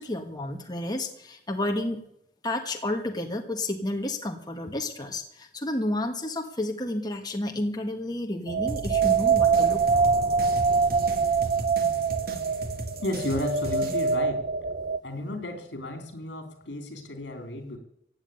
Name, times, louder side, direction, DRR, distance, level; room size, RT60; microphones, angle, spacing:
voice 1, 0.0-2.0 2.4-9.8, left 1 dB, 25° left, 2 dB, 1.6 m, -31 dB
sound 1, 8.5-15.0, right 5 dB, 40° right, 0.5 m, -24 dB
sound 2, 8.7-14.2, right 2 dB, 60° right, 2.2 m, -37 dB
voice 2, 13.0-14.5 15.0-17.8, left 1 dB, 80° left, 6 dB, 3.3 m, -33 dB
16.5 x 7.7 x 9.0 m, 0.74 s
head